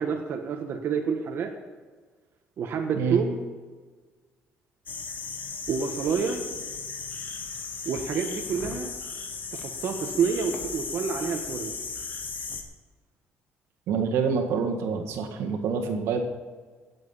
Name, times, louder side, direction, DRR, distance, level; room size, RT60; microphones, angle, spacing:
voice 1, 0.0-1.5 2.6-3.4 5.7-6.4 7.8-8.9 9.5-11.7, right 6 dB, 55° right, 2 dB, 1.4 m, -28 dB
sound 1, 4.9-12.6, left 5 dB, 40° left, 1.8 m, -36 dB
voice 2, 13.9-16.2, right 5 dB, 85° right, 4 dB, 1.9 m, -27 dB
17.0 x 7.7 x 5.7 m, 1.4 s
cardioid pair, 125°, 5 cm